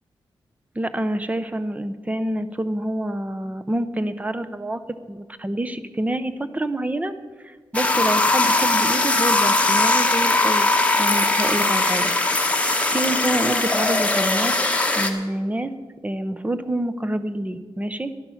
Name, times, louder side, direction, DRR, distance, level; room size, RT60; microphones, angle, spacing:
voice 1, 0.8-4.8 5.1-7.1 7.4-10.7 11.0-12.1 12.5-14.6 14.9-15.7 16.0-18.1, right 1 dB, 15° right, 11 dB, 0.7 m, -27 dB
sound 1, 7.7-15.1, left 2 dB, 15° left, 1.1 m, -20 dB
12.0 x 11.5 x 5.8 m, 1.4 s
wide cardioid pair, 130°, 9 cm